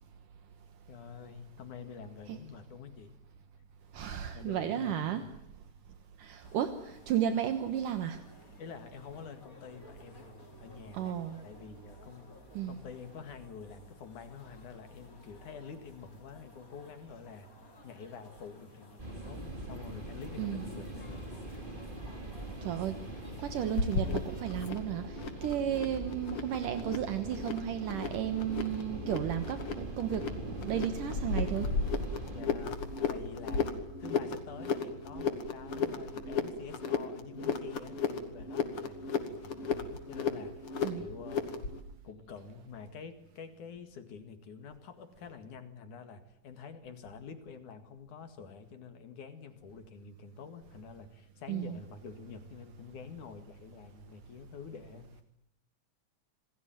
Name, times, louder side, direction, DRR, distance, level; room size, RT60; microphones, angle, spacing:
voice 1, 0.9-3.1 4.3-5.3 8.6-10.3 10.6-11.1 11.4-12.3 12.7-17.5 17.8-21.3 32.3-40.6 41.0-41.6 42.0-55.2, left 6 dB, 65° left, 8 dB, 3.4 m, -48 dB
voice 2, 3.9-5.2 6.2-8.2 10.9-11.4 12.6-12.8 20.4-20.7 22.6-23.0 23.4-31.7 40.8-41.1 51.5-51.8, right 10 dB, 75° right, 9 dB, 2.8 m, -33 dB
sound 1, 6.4-24.4, left 2 dB, 25° left, 4.3 m, -56 dB
sound 2, 19.0-32.4, right 1 dB, 15° right, 2.6 m, -42 dB
sound 3, 23.8-41.8, left 5 dB, 45° left, 2.8 m, -35 dB
27.5 x 19.0 x 9.1 m, 0.78 s
omnidirectional pair, 3.9 m